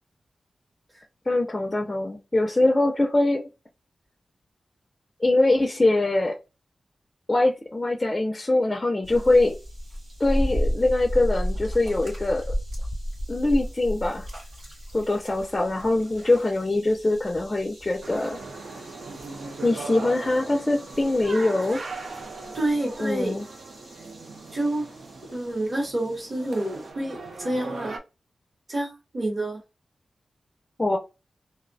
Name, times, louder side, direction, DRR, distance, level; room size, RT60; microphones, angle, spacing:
voice 1, 1.3-3.5 5.2-6.3 7.3-9.5 10.2-12.5 13.3-14.3 14.9-18.4 19.6-21.8 23.0-23.5 30.8-31.0, left 2 dB, 20° left, 2 dB, 0.4 m, -23 dB
sound 1, 9.0-26.9, equal, 85° right, 1.4 m, -35 dB
sound 2, 18.0-28.0, right 3 dB, 65° right, 0.4 m, -39 dB
voice 2, 22.5-23.3 24.5-24.9 25.3-28.0 28.7-29.6, right 1 dB, 30° right, -2 dB, 0.7 m, -28 dB
2.5 x 2.0 x 2.6 m, 0.27 s
wide cardioid pair, 145°, 0 cm